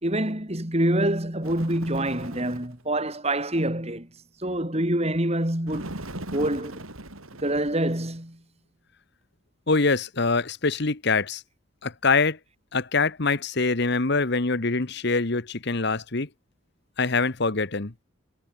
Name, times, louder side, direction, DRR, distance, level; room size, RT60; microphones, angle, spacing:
voice 1, 0.0-4.1 4.4-6.0 6.3-6.8 7.4-8.4, right 1 dB, 30° right, 3.7 m, -26 dB
Bird, 1.4-2.8 5.7-8.2, right 1 dB, 85° right, 6.5 m, -39 dB
voice 2, 9.7-11.4 11.8-12.4 12.7-16.3 17.0-17.9, left 3 dB, 55° left, 1.3 m, -24 dB
head